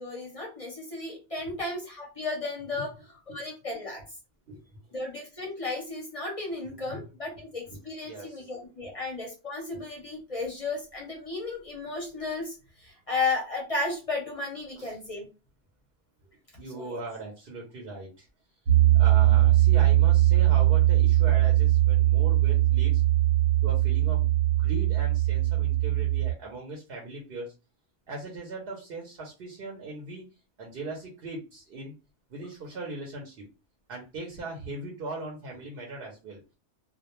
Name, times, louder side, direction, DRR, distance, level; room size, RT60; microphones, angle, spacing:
voice 1, 0.0-2.9 3.3-4.0 4.9-15.3 16.7-17.0, left 3 dB, 40° left, -1 dB, 0.6 m, -34 dB
voice 2, 4.5-4.8 6.6-7.0 8.0-8.5 8.8-8.9 14.8-15.0 16.6-18.3 18.9-23.0 23.6-27.5 28.1-30.2 30.6-31.9 32.3-33.5 33.9-36.4, right 2 dB, 60° right, -1 dB, 0.8 m, -39 dB
Piano, 18.7-26.3, right 14 dB, 90° right, 0.9 m, -21 dB
2.2 x 2.1 x 2.9 m, 0.31 s
omnidirectional pair, 1.2 m